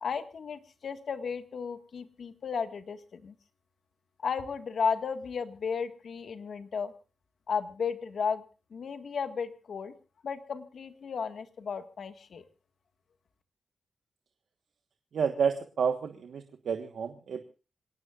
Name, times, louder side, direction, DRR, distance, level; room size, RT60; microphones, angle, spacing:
voice 1, 0.0-3.3 4.2-6.9 7.5-8.4 8.7-9.9 10.2-12.4, left 6 dB, 65° left, 9 dB, 1.8 m, -34 dB
voice 2, 15.1-17.5, right 6 dB, 80° right, 7 dB, 1.4 m, -30 dB
27.0 x 18.5 x 2.5 m, 0.34 s
wide cardioid pair, 110°, 0 cm